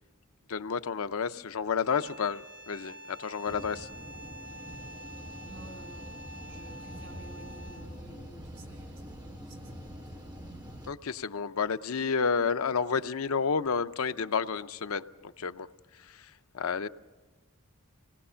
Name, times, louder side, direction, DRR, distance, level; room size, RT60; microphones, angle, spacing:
voice 1, 0.5-3.9 10.9-15.7 15.9-16.9, left 5 dB, 85° left, 11 dB, 0.6 m, -31 dB
sound 1, 1.8-8.0, right 1 dB, 70° right, 3.4 m, -47 dB
sound 2, 3.5-10.9, equal, 20° right, 1.5 m, -45 dB
voice 2, 5.4-6.1 6.4-10.5, right 2 dB, 90° right, 6 dB, 4.4 m, -52 dB
26.5 x 19.5 x 5.6 m, 1.3 s
head